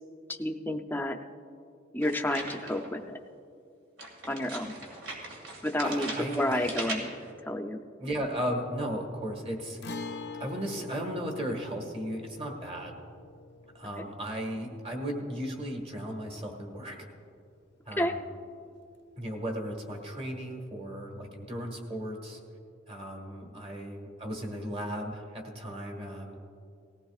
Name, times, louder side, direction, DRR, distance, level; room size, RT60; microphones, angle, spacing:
voice 1, 0.3-1.2 1.9-3.2 4.3-4.8 5.6-7.1 7.4-7.8 14.0-14.1 18.0-18.1, left 1 dB, 10° left, 4 dB, 0.6 m, -30 dB
sound 1, 2.0-3.0 4.0-7.3, right 2 dB, 75° right, 2.2 m, -39 dB
voice 2, 5.8-6.7 8.0-10.0 10.4-13.0 13.7-17.1 17.9-18.2 19.2-22.4 22.9-26.4, equal, 30° right, 2 dB, 1.6 m, -36 dB
Guitar, 9.8-17.4 17.7-17.8 19.8-19.9, left 4 dB, 60° left, 0.6 m, -45 dB
19.0 x 15.5 x 2.4 m, 2.4 s
head